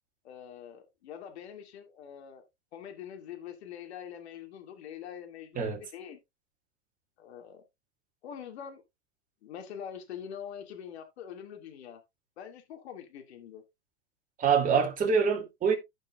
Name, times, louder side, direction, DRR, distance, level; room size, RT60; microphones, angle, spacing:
voice 1, 0.2-2.4 2.7-6.2 7.2-7.6 8.2-8.8 9.4-12.0 12.4-13.6, left 8 dB, 75° left, 2.4 m, -44 dB
voice 2, 14.4-15.7, right 6 dB, 25° right, 2.8 m, -25 dB
15.0 x 5.3 x 2.5 m
hypercardioid pair, 125°, 33 cm